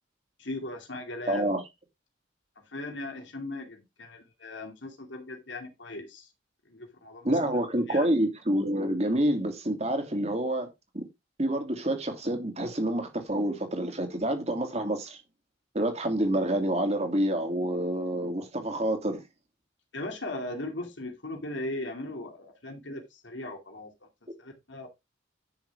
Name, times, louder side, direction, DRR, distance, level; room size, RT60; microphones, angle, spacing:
voice 1, 0.4-1.5 2.7-6.3 6.7-8.1 19.9-23.9 24.4-24.9, left 2 dB, 80° left, 2.6 m, -38 dB
voice 2, 1.3-1.6 7.2-11.0 11.4-15.2 15.7-19.2, right 1 dB, 35° right, 2.9 m, -28 dB
11.0 x 7.0 x 3.6 m
head